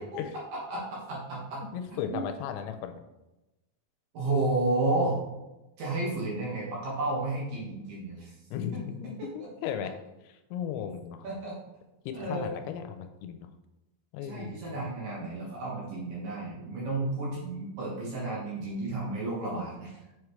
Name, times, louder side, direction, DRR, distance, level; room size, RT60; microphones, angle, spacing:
voice 1, 0.7-1.6 1.9-2.2 4.1-5.2 5.8-8.4 11.2-11.5 12.1-12.5 14.3-19.9, right 2 dB, 65° right, -5 dB, 2.5 m, -32 dB
voice 2, 1.6-3.0 8.5-9.9 10.2-11.3 12.1-13.5 14.1-14.7, left 8 dB, 90° left, 8 dB, 3.0 m, -36 dB
7.3 x 4.8 x 3.2 m, 1.0 s
omnidirectional pair, 5.2 m